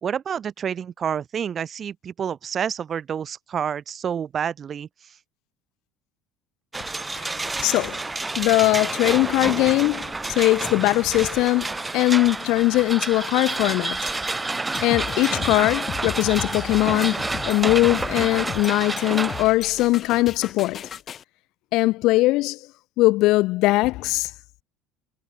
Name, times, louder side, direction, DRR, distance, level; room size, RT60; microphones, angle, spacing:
voice 1, 0.0-5.2, right 8 dB, 40° right, 3.8 m, -29 dB
sound 1, 6.7-19.5, right 3 dB, 15° right, 0.8 m, -29 dB
voice 2, 7.2-8.0 8.4-14.1 14.8-20.8 21.7-22.6 23.0-24.3, left 19 dB, 60° left, 0.4 m, -21 dB
sound 2, 14.7-21.2, left 8 dB, 40° left, 4.3 m, -35 dB
hypercardioid pair, 65°, 0 cm